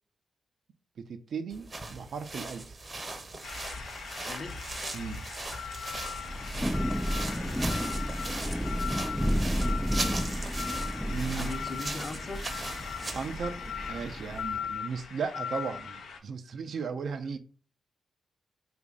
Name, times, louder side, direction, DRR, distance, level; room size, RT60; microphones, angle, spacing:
voice 1, 1.0-2.8 4.9-5.2 11.1-11.5 13.1-17.4, right 5 dB, 70° right, 0.4 m, -36 dB
sound 1, 1.5-13.4, right 2 dB, 40° right, 0.7 m, -39 dB
sound 2, 3.4-16.2, left 6 dB, 85° left, 0.5 m, -39 dB
voice 2, 4.2-4.6 7.3-7.8 11.3-12.5, left 2 dB, 50° left, 0.7 m, -40 dB
Thunder / Rain, 6.0-14.6, equal, ahead, 0.4 m, -32 dB
3.0 x 2.5 x 3.5 m
supercardioid pair, 45°, 0 cm